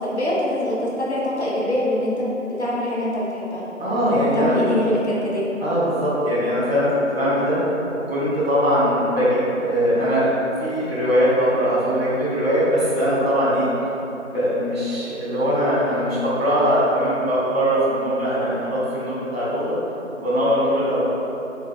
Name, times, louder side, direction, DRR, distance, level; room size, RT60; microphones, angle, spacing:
voice 1, 0.0-2.3 2.6-3.6 4.3-5.5, left 1 dB, 55° left, -6 dB, 0.7 m, -23 dB
voice 2, 3.8-4.6 5.6-7.6 8.1-10.3 10.6-13.7 14.3-19.8 20.2-21.0, equal, 50° right, -8 dB, 1.2 m, -21 dB
4.5 x 2.3 x 2.3 m, 3.0 s
figure-of-eight pair, 165°, 39 cm